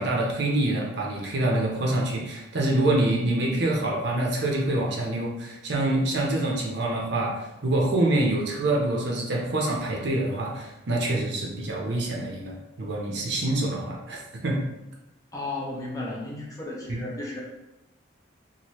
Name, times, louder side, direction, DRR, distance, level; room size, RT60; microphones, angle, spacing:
voice 1, 0.0-7.3 7.6-14.6 16.9-17.0, right 1 dB, 60° right, -2 dB, 0.7 m, -26 dB
voice 2, 15.3-17.4, left 2 dB, 20° left, -4 dB, 0.6 m, -34 dB
2.8 x 2.6 x 3.0 m, 0.94 s
head